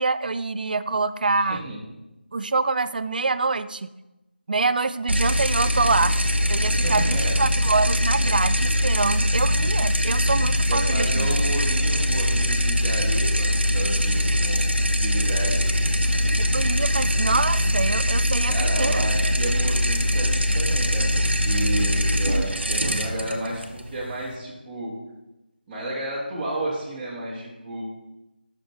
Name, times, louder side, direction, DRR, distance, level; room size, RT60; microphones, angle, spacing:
voice 1, 0.0-1.6 2.3-3.9 4.5-6.1 6.5-11.4 16.5-19.1, right 3 dB, 55° right, 14 dB, 0.3 m, -25 dB
voice 2, 1.3-1.8 6.7-7.3 10.7-15.8 18.5-24.9 25.7-27.8, right 1 dB, 15° right, -7 dB, 1.7 m, -32 dB
sound 1, 5.1-24.4, equal, 80° right, 0.9 m, -22 dB
8.7 x 5.9 x 3.3 m, 0.99 s
figure-of-eight pair, 160°, 6 cm